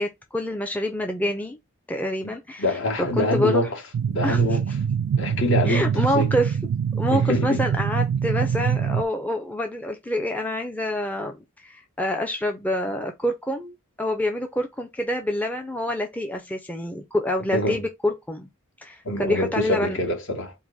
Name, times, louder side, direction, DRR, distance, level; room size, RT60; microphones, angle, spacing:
voice 1, 0.0-1.6 1.9-2.6 3.0-3.7 4.2-4.6 5.7-6.6 6.9-18.5 18.8-20.0, left 1 dB, 5° left, 0.5 m, -27 dB
voice 2, 2.6-3.8 4.1-4.6 5.2-5.9 6.1-6.3 7.1-7.6 17.5-17.8 19.0-20.5, left 1 dB, 60° left, 1.4 m, -25 dB
sound 1, 3.9-9.0, right 7 dB, 80° right, 0.3 m, -24 dB
4.7 x 2.1 x 3.9 m
head